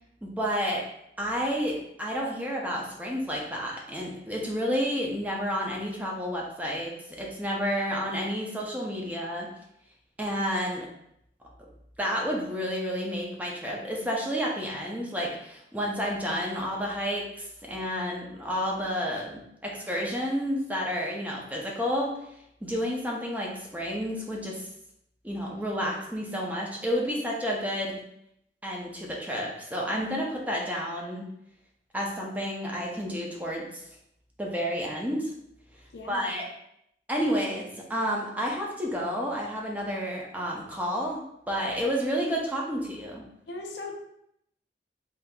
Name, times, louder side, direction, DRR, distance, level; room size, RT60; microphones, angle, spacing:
voice 1, 0.2-0.8 1.2-9.5 10.2-10.9 12.0-22.1 22.6-24.7 25.2-28.0 28.6-31.2 31.9-33.6 34.4-35.3 36.1-36.4 37.1-43.2, equal, 10° right, -2 dB, 0.5 m, -30 dB
voice 2, 35.9-36.4 43.5-44.0, left 2 dB, 70° left, 1 dB, 0.5 m, -38 dB
3.7 x 2.7 x 2.2 m, 0.76 s
head